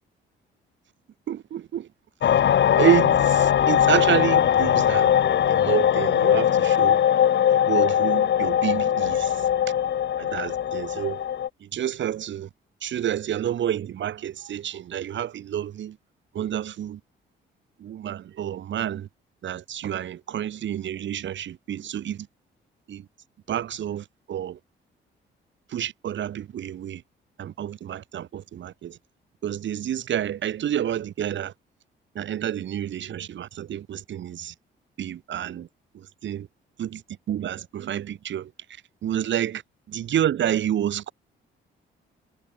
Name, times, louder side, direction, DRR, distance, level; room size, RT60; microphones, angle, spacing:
voice 1, 1.3-1.9 2.8-5.1 5.5-7.0 7.5-9.5 10.2-11.2 11.6-12.5 12.8-16.0 16.3-17.0 17.8-19.1 19.4-22.3 22.9-23.0 23.5-24.6 25.7-27.0 27.4-29.0 29.4-31.5 32.2-34.5 35.0-35.7 35.9-36.5 36.8-37.0 37.3-38.5 39.0-39.6 39.9-41.1, right 10 dB, 70° right, 7.2 m, -29 dB
sound 1, 2.2-11.5, left 10 dB, 65° left, 4.4 m, -20 dB
cardioid pair, 90°, 20 cm